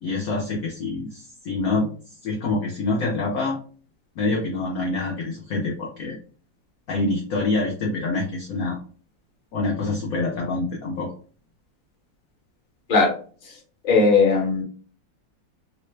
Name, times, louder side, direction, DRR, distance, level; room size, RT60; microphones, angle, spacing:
voice 1, 0.0-1.9 2.2-3.6 4.2-6.2 6.9-8.8 9.5-11.1, left 2 dB, 65° left, -1 dB, 0.9 m, -26 dB
voice 2, 13.8-14.6, left 4 dB, 35° left, -1 dB, 0.8 m, -18 dB
3.2 x 2.1 x 3.1 m, 0.41 s
omnidirectional pair, 2.1 m